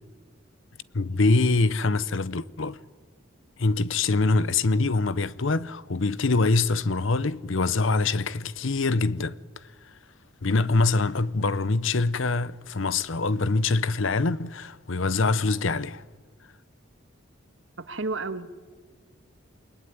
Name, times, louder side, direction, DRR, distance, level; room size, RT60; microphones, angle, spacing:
voice 1, 0.9-2.8 3.6-9.4 10.4-16.0, left 3 dB, 70° left, 0.8 m, -24 dB
voice 2, 17.8-18.5, right 3 dB, 65° right, 1.6 m, -31 dB
28.5 x 21.0 x 9.6 m
head